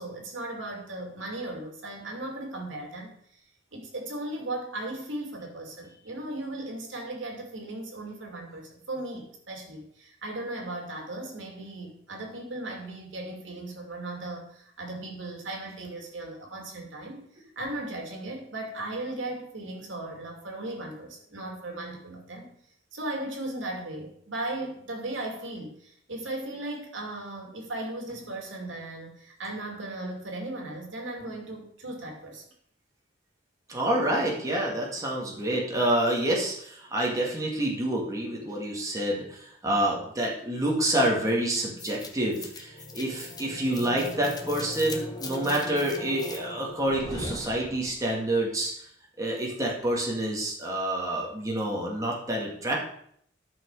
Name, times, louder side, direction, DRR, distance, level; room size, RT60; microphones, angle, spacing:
voice 1, 0.0-3.1 3.7-17.2 17.6-22.5 22.9-32.4 37.0-37.1, right 2 dB, 80° right, 1 dB, 2.5 m, -37 dB
voice 2, 33.7-48.7 49.2-52.8, right 1 dB, 20° right, -3 dB, 2.0 m, -28 dB
sound 1, 41.8-48.1, left 2 dB, 20° left, 1.0 m, -39 dB
11.5 x 6.2 x 4.8 m, 0.66 s
head